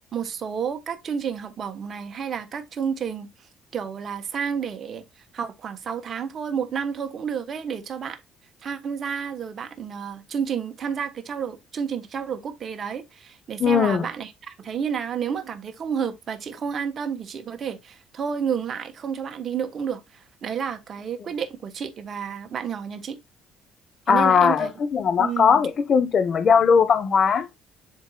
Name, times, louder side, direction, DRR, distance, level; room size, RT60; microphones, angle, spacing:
voice 1, 0.1-3.3 3.7-5.0 5.3-8.2 8.6-23.2 24.1-24.7 25.2-25.6, right 7 dB, 45° right, 1.2 m, -30 dB
voice 2, 13.6-14.1 24.1-27.5, left 6 dB, 45° left, 1.0 m, -19 dB
10.5 x 4.0 x 2.3 m
cardioid pair, 100°, 0 cm